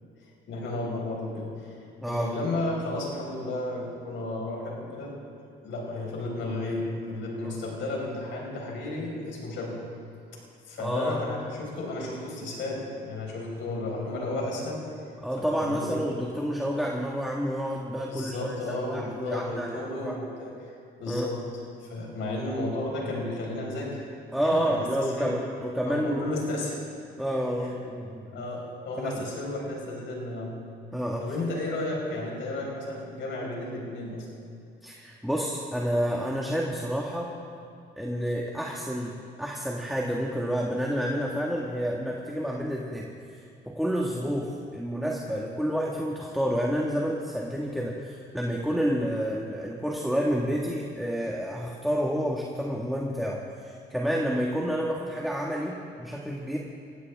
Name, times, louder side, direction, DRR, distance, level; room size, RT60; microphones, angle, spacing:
voice 1, 0.5-1.7 2.0-5.1 5.6-9.8 10.7-14.8 15.4-15.9 18.1-20.6 21.0-21.4 21.8-24.0 24.4-25.4 25.9-26.8 27.6-27.7 28.3-30.6 31.2-34.3, left 2 dB, 75° left, -2 dB, 5.1 m, -33 dB
voice 2, 10.8-11.3 15.2-20.2 21.1-21.3 24.3-26.2 27.2-28.5 29.0-29.2 30.9-31.2 34.8-37.3 38.0-43.1 43.3-56.6, equal, ahead, -2 dB, 1.7 m, -29 dB
22.0 x 17.0 x 3.6 m, 2.5 s
cardioid pair, 90°, 20 cm